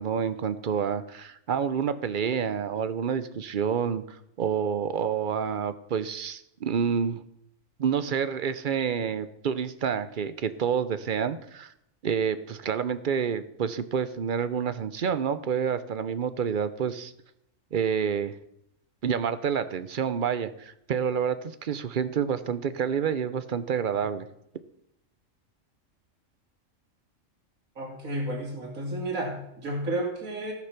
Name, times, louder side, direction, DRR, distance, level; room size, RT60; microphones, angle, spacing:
voice 1, 0.0-7.2 7.8-11.7 12.0-17.1 17.7-18.4 19.0-24.3, right 7 dB, 50° right, 13 dB, 0.7 m, -28 dB
voice 2, 27.8-30.5, right 1 dB, 85° right, 0 dB, 2.9 m, -32 dB
15.0 x 6.1 x 5.8 m, 0.79 s
omnidirectional pair, 1.4 m